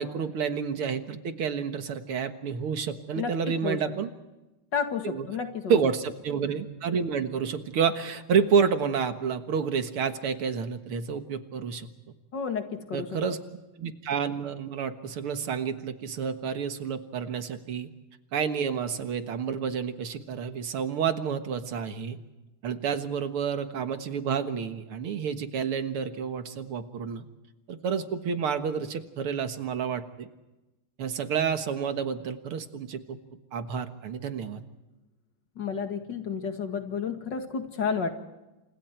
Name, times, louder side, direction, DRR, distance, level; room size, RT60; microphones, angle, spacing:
voice 1, 0.0-4.1 5.0-5.3 5.7-11.9 12.9-13.4 13.8-17.9 18.3-22.2 22.6-27.2 27.7-30.3 31.0-33.2 33.5-34.6, right 6 dB, 80° right, 8 dB, 2.4 m, -29 dB
voice 2, 3.2-3.8 4.7-5.8 12.3-13.1 35.6-38.1, left 6 dB, 55° left, 6 dB, 2.6 m, -31 dB
29.5 x 27.0 x 4.6 m, 1.0 s
omnidirectional pair, 2.4 m